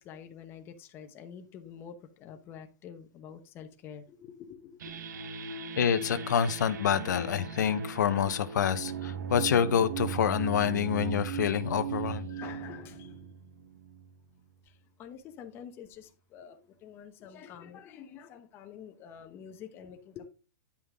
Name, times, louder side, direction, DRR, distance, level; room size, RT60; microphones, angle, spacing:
voice 1, 0.0-5.0 12.3-13.3 14.7-14.8 15.0-20.3, left 8 dB, 25° left, 1.0 m, -47 dB
sound 1, 4.8-14.2, right 6 dB, 85° right, 1.2 m, -38 dB
voice 2, 5.8-12.2, left 8 dB, 90° left, 1.0 m, -27 dB
10.0 x 5.7 x 3.6 m
supercardioid pair, 160°, 9 cm